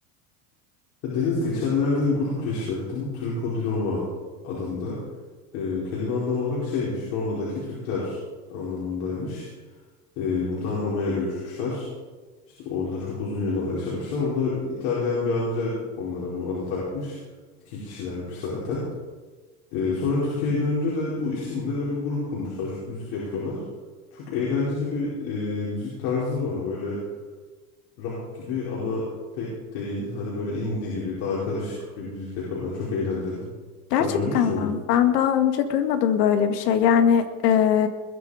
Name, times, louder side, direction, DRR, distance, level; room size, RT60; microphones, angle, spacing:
voice 1, 1.0-4.0 4.4-5.0 5.5-8.2 8.5-9.5 10.2-11.8 12.6-17.2 17.6-18.8 19.7-23.6 24.1-27.0 28.0-29.1 29.3-33.4 34.0-34.7, left 3 dB, 65° left, -6 dB, 5.1 m, -28 dB
voice 2, 33.9-37.9, left 8 dB, 85° left, 8 dB, 1.9 m, -21 dB
21.0 x 11.0 x 5.0 m, 1.4 s
supercardioid pair, 130°, 46 cm